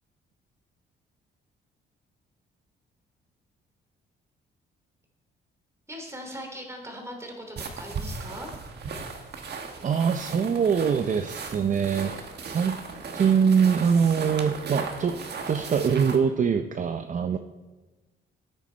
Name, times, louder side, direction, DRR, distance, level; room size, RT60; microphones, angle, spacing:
voice 1, 5.9-8.5, equal, 15° right, 2 dB, 3.0 m, -39 dB
sound 1, 7.6-16.2, right 5 dB, 55° right, 1.6 m, -37 dB
voice 2, 9.8-12.8 13.1-15.2 15.5-17.4, right 6 dB, 40° right, 8 dB, 0.7 m, -23 dB
14.5 x 9.1 x 4.4 m, 1.2 s
cardioid pair, 90°, 20 cm